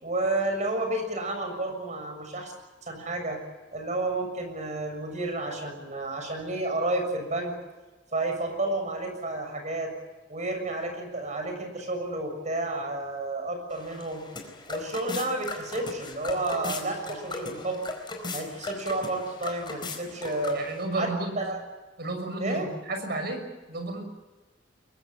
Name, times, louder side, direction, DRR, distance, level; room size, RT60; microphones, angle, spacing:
voice 1, 0.0-2.5 2.9-3.4 3.7-7.5 8.1-9.9 10.3-14.2 14.7-17.8 18.3-20.6 20.9-21.1 21.3-21.6 22.4-22.6, right 2 dB, 40° right, 4 dB, 6.8 m, -31 dB
sound 1, 13.7-20.8, left 3 dB, 25° left, 4.5 m, -38 dB
voice 2, 20.5-21.4 22.0-24.0, right 2 dB, 60° right, 6 dB, 6.3 m, -32 dB
23.5 x 22.5 x 8.7 m, 1.2 s
head